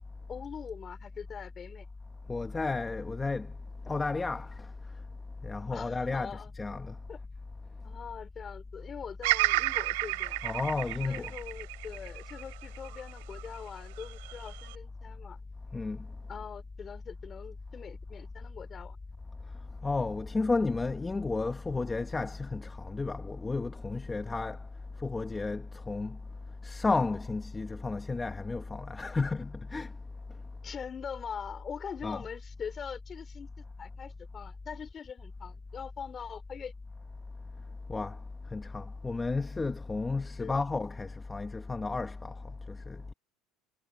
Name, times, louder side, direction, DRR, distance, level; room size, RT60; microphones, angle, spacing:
voice 1, 0.3-1.9 5.7-6.5 7.1-7.2 7.8-10.4 11.1-15.4 16.3-19.0 30.6-36.7 40.4-40.5, left 7 dB, 30° left, 3.6 m, -43 dB
voice 2, 2.3-3.5 3.9-4.7 5.4-7.0 10.4-11.3 15.7-16.0 19.8-24.6 25.0-26.2 26.6-29.9 32.0-32.2 37.9-38.2 38.5-42.4 42.7-43.1, left 3 dB, 15° left, 1.2 m, -32 dB
Bird vocalization bird call bird song, 9.2-13.4 14.0-14.7, right 24 dB, 85° right, 3.5 m, -31 dB
supercardioid pair, 125°, 0 cm